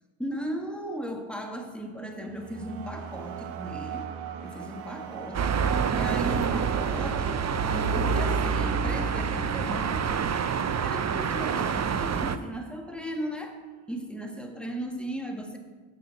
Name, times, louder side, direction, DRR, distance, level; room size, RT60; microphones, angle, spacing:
voice 1, 0.2-4.1 4.4-10.1 10.7-13.6 13.9-15.6, right 1 dB, ahead, 3 dB, 1.7 m, -36 dB
sound 1, 1.8-12.1, right 6 dB, 85° right, 1.0 m, -40 dB
sound 2, 5.3-12.4, right 6 dB, 35° right, 0.7 m, -27 dB
8.5 x 6.5 x 7.7 m, 1.3 s
supercardioid pair, 65°, 49 cm